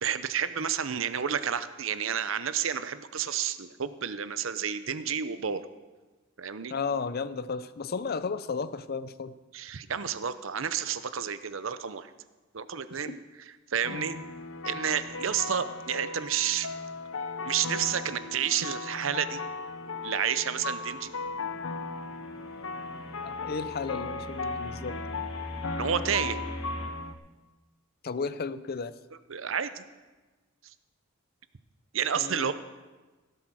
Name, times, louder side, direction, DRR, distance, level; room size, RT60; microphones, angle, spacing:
voice 1, 0.0-5.6 6.4-6.7 9.5-12.1 12.5-13.2 13.7-14.1 14.6-16.7 17.4-19.4 20.0-21.1 25.7-26.4 29.3-29.8 31.9-32.5, right 8 dB, 70° right, 12 dB, 0.7 m, -30 dB
voice 2, 6.7-9.3 13.1-13.2 13.9-14.1 23.2-25.2 28.0-28.9 32.2-32.5, left 5 dB, 50° left, 15 dB, 0.5 m, -34 dB
sound 1, 13.8-27.1, left 3 dB, 80° left, 0.8 m, -37 dB
sound 2, 19.4-19.5 19.8-26.9, equal, 30° left, 2.7 m, -43 dB
16.5 x 7.8 x 6.3 m, 1.2 s
head